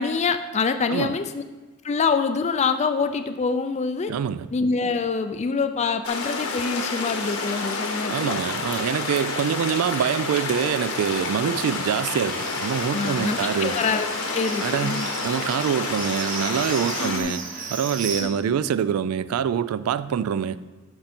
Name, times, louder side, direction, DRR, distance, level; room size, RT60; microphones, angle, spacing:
voice 1, 0.0-1.4 1.8-4.1 4.5-8.4 12.9-15.1 17.0-17.3 18.2-18.3, left 5 dB, 30° left, 0.4 m, -25 dB
voice 2, 4.1-4.5 8.1-13.8 14.6-17.4 17.7-20.6, right 8 dB, 85° right, 0.3 m, -25 dB
sound 1, 6.0-17.2, left 3 dB, 85° left, 1.4 m, -29 dB
Livestock farm animals working animals, 12.3-18.2, right 4 dB, 40° right, 1.0 m, -36 dB
11.5 x 5.2 x 4.4 m
head